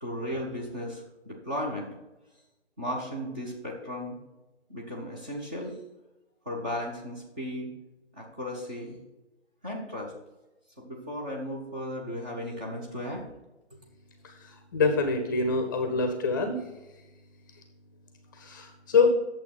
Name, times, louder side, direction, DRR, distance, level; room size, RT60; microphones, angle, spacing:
voice 1, 0.0-1.9 2.8-4.2 4.7-5.8 6.5-7.7 8.1-9.0 9.6-10.1 10.8-13.3, equal, 10° right, -3 dB, 0.6 m, -35 dB
voice 2, 14.7-16.5 18.4-19.1, left 4 dB, 20° left, 5 dB, 0.8 m, -25 dB
8.8 x 6.9 x 4.1 m, 1.0 s
figure-of-eight pair, 140°, 35 cm